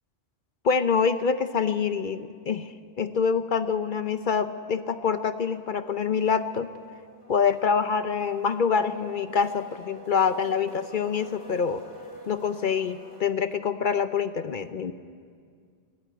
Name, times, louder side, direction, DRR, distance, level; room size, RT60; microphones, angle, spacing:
voice 1, 0.6-2.7 3.0-6.7 7.3-11.8 12.3-14.9, left 6 dB, 50° left, 11 dB, 0.8 m, -26 dB
sound 1, 4.5-4.6 5.0-13.2, left 1 dB, 75° left, 5.6 m, -47 dB
22.5 x 13.0 x 9.1 m, 2.1 s
omnidirectional pair, 1.1 m